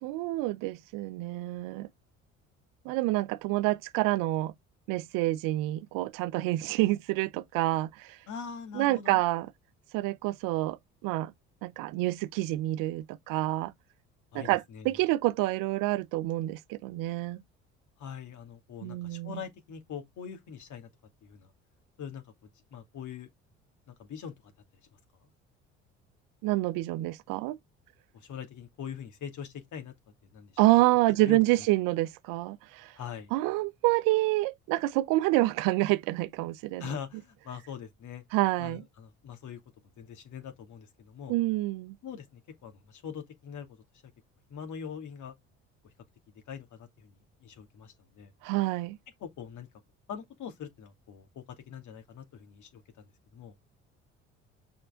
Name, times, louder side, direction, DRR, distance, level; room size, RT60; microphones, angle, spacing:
voice 1, 0.0-1.9 2.8-4.5 4.9-8.2 8.7-9.5 9.9-11.3 11.6-13.7 14.3-17.4 18.8-19.4 26.4-27.6 30.6-32.9 33.3-36.9 38.3-38.8 41.3-42.0 48.4-49.0, right 18 dB, 70° right, 0.9 m, -28 dB
voice 2, 8.3-9.2 14.3-15.0 18.0-20.9 21.2-21.5 22.0-22.2 22.7-23.3 23.9-24.3 25.2-25.3 28.1-29.9 30.3-30.5 31.2-31.4 32.9-33.3 36.8-38.2 38.6-39.6 40.0-41.3 42.0-43.7 44.5-45.3 46.5-47.1 47.4-48.3 49.2-49.7 50.1-53.0 53.3-53.5, left 7 dB, 55° left, 2.7 m, -42 dB
6.8 x 5.6 x 3.7 m
hypercardioid pair, 60°, 35 cm